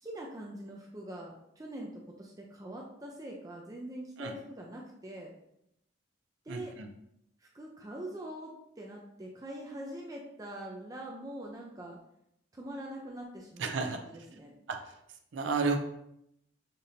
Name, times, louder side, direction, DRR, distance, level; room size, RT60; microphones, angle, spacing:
voice 1, 0.0-5.3 6.5-6.7 7.4-12.0 12.5-13.7 13.9-14.5, right 1 dB, 20° right, -1 dB, 0.4 m, -43 dB
voice 2, 6.5-6.9 13.6-14.0 14.7-14.8 15.3-15.8, right 4 dB, 75° right, 5 dB, 0.5 m, -31 dB
6.6 x 2.6 x 2.7 m, 0.78 s
head